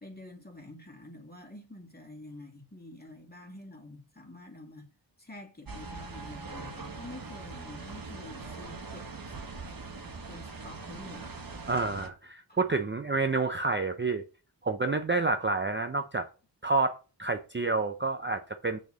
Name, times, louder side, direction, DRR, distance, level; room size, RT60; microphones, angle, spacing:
voice 1, 0.0-4.9 5.2-9.4 10.3-11.4 12.5-12.6, left 2 dB, 20° left, 2.3 m, -48 dB
sound 1, 5.7-12.1, right 3 dB, 50° right, 1.4 m, -42 dB
voice 2, 11.7-14.2 14.6-16.3 16.6-18.9, right 3 dB, 25° right, 0.6 m, -29 dB
6.6 x 4.3 x 6.3 m
wide cardioid pair, 65°, 45 cm